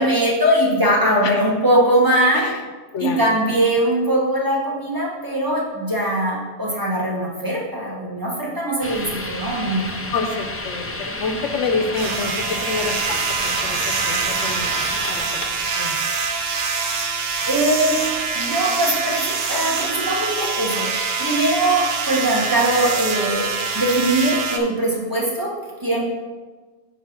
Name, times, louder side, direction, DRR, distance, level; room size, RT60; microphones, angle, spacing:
voice 1, 0.0-2.4 3.0-10.1 17.5-18.0 18.3-20.9 21.2-23.5 23.7-25.5 25.8-26.1, right 1 dB, 20° right, -4 dB, 1.5 m, -21 dB
sound 1, 8.8-15.7, left 2 dB, 20° left, 0.4 m, -31 dB
voice 2, 10.1-16.0, left 4 dB, 90° left, 6 dB, 1.1 m, -28 dB
sound 2, 11.9-24.6, right 5 dB, 60° right, 0.9 m, -24 dB
9.4 x 3.3 x 5.9 m, 1.4 s
omnidirectional pair, 1.2 m